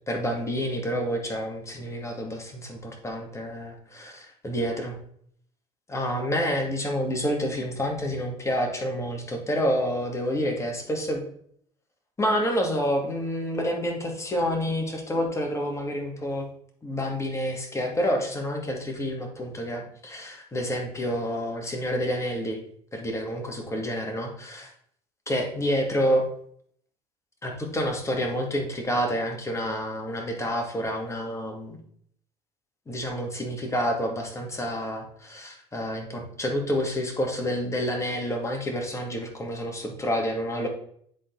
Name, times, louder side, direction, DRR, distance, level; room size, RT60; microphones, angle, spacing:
voice 1, 0.1-5.0 5.9-11.2 12.2-16.4 16.8-22.6 22.9-24.7 25.3-26.3 27.4-31.8 32.9-40.7, equal, 20° left, 2 dB, 2.4 m, -28 dB
10.0 x 4.1 x 4.0 m, 0.63 s
supercardioid pair, 80°, 15 cm